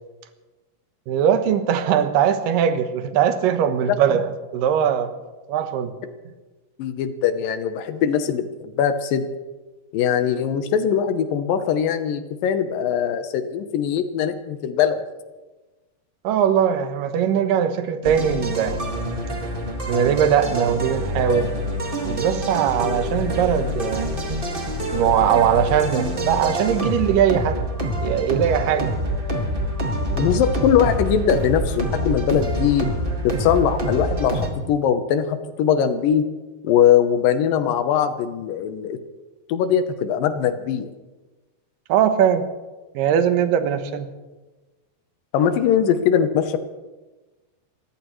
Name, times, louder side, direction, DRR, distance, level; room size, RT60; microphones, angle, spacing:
voice 1, 1.1-5.1 5.5-5.9 16.2-18.8 19.9-21.5 22.1-24.1 24.9-27.6 28.0-28.9 41.9-42.4 42.9-44.1, right 8 dB, 70° right, 8 dB, 2.4 m, -20 dB
voice 2, 6.8-9.3 9.9-15.0 30.2-32.9 33.2-36.3 36.6-39.0 39.5-40.9 45.3-46.6, left 8 dB, 70° left, 9 dB, 2.4 m, -21 dB
sound 1, 18.0-34.5, equal, 45° right, 0.6 m, -26 dB
29.5 x 15.0 x 3.2 m, 1.2 s
omnidirectional pair, 4.6 m